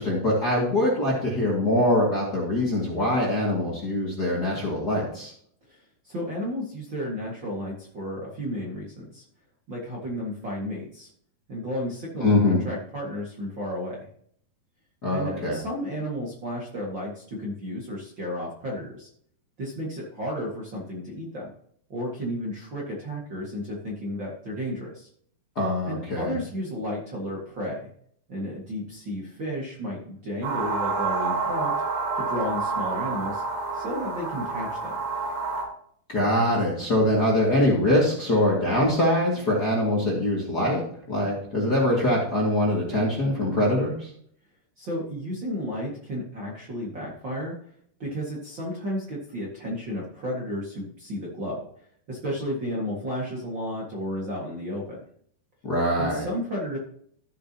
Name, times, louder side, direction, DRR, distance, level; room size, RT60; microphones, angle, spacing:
voice 1, 0.0-5.3 12.2-12.6 15.0-15.6 25.6-26.4 36.1-40.8 41.1-44.1 55.6-56.3, left 1 dB, 30° left, -5 dB, 2.2 m, -23 dB
voice 2, 5.7-9.2 9.7-11.1 11.5-14.1 15.1-19.1 19.6-21.5 21.9-25.1 25.9-27.9 28.3-31.7 32.1-33.4 33.7-35.0 44.8-47.6 48.0-51.6 52.1-55.0 56.0-56.8, equal, 40° right, -5 dB, 2.1 m, -33 dB
sound 1, 30.4-35.7, right 4 dB, 90° right, 4.2 m, -28 dB
14.5 x 7.6 x 2.9 m, 0.63 s
omnidirectional pair, 4.4 m